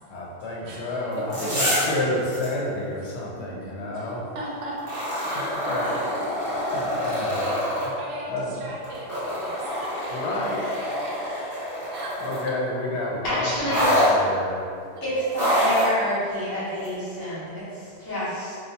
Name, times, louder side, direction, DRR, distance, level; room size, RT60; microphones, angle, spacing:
voice 1, 0.0-4.2 5.7-5.8 6.5-8.0 8.3-8.7 10.1-10.8 11.6-15.0 17.2-17.5 18.0-18.1, left 1 dB, 80° left, -4 dB, 0.8 m, -31 dB
voice 2, 0.7-1.1 1.5-1.7 3.4-5.8 7.9-8.3 8.6-9.1 9.4-10.2 10.5-11.4 11.9-12.2 13.3-14.1 15.0-15.8, right 1 dB, 75° right, -3 dB, 0.8 m, -39 dB
sound 1, 1.1-2.0 2.3-2.5 4.8-7.9 8.8-12.5 13.7-14.1 15.3-15.9 16.8-16.9, equal, 20° right, 0.9 m, -25 dB
voice 3, 13.2-14.1 15.0-18.6, equal, 25° left, -11 dB, 0.7 m, -28 dB
2.3 x 2.1 x 2.7 m, 2.3 s
omnidirectional pair, 1.1 m